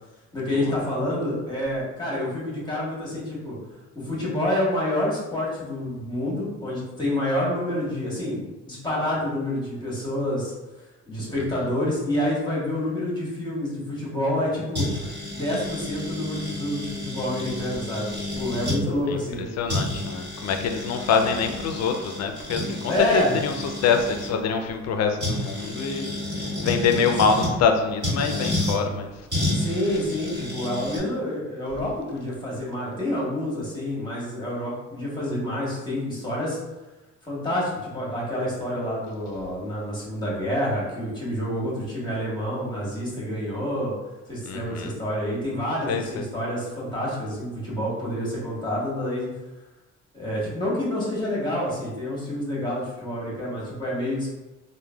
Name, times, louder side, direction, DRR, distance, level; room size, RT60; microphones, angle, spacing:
voice 1, 0.3-3.6 3.9-10.5 11.1-15.0 15.3-19.5 22.9-23.3 29.5-36.6 37.2-43.9 44.3-49.3 50.1-54.3, left 1 dB, 15° left, -6 dB, 1.2 m, -28 dB
sound 1, 14.7-18.8 19.3-19.4 19.7-24.3 25.2-27.5 28.0-28.8 29.3-31.0, left 1 dB, 35° right, 1.4 m, -30 dB
voice 2, 19.6-23.5 23.8-29.1 44.5-44.9 45.9-46.2, left 5 dB, 60° left, 5 dB, 0.4 m, -25 dB
3.1 x 2.1 x 2.2 m, 1.1 s
cardioid pair, 90°, 30 cm